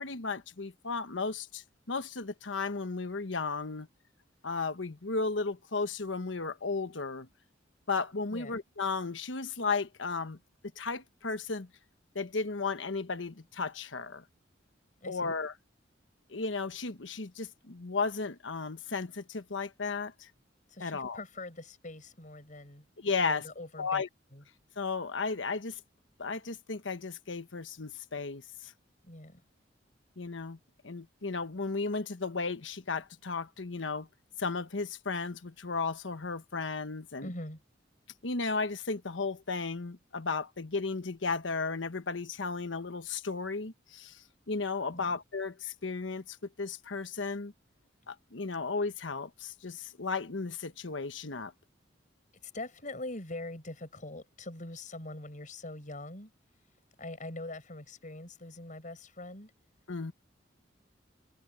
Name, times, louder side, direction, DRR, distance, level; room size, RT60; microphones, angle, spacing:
voice 1, 0.0-3.9 4.4-7.3 7.9-10.4 10.8-11.7 12.1-14.2 15.1-15.5 16.3-20.3 20.8-21.2 23.0-23.4 23.8-24.1 24.8-25.8 26.2-28.7 30.2-30.6 30.8-34.1 34.4-37.3 38.2-47.5 48.1-51.5 59.9-60.1, left 4 dB, 85° left, 1.2 m, -34 dB
voice 2, 15.0-15.3 20.7-22.9 23.2-24.0 24.3-24.4 29.0-29.4 37.2-37.6 44.9-45.2 52.4-56.3 57.0-59.5, left 2 dB, 45° left, 6.3 m, -43 dB
head